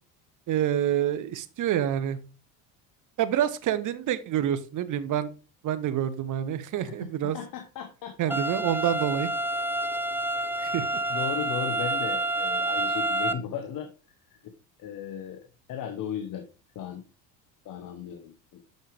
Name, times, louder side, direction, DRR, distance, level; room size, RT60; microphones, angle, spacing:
voice 1, 0.5-2.2 3.2-5.3 5.6-7.4 8.2-9.3 10.6-10.9, right 10 dB, 50° right, 14 dB, 0.9 m, -27 dB
voice 2, 6.7-8.4 11.1-13.9 14.3-14.5 14.8-16.5 16.7-17.0 17.6-18.6, left 8 dB, 50° left, 8 dB, 1.0 m, -36 dB
sound 1, 8.3-13.3, right 1 dB, 5° right, 0.4 m, -28 dB
6.6 x 6.5 x 3.3 m, 0.33 s
supercardioid pair, 90°, 41 cm